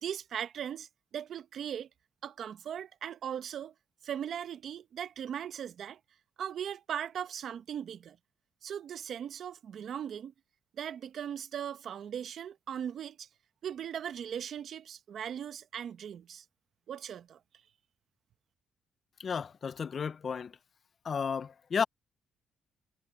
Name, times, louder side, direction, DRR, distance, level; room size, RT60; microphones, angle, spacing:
voice 1, 0.0-0.9 1.1-1.9 2.2-3.7 4.0-6.0 6.4-8.2 8.6-10.3 10.8-13.3 13.6-16.4 16.9-17.4, right 9 dB, 65° right, 1.0 m, -38 dB
voice 2, 19.2-20.5 21.1-21.8, left 6 dB, 45° left, 0.5 m, -33 dB
cardioid pair, 90°, 0 cm